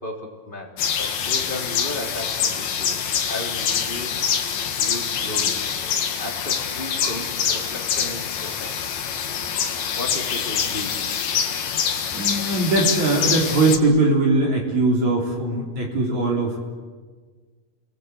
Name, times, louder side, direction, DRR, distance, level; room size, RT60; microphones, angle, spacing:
voice 1, 0.0-3.0 3.3-5.6 6.2-9.0 10.0-11.0, left 1 dB, 15° left, 0 dB, 2.8 m, -35 dB
sound 1, 0.8-13.8, left 7 dB, 70° left, 3.5 m, -25 dB
voice 2, 12.1-16.6, right 2 dB, 50° right, -1 dB, 4.6 m, -21 dB
30.0 x 19.0 x 8.3 m, 1.5 s
omnidirectional pair, 4.5 m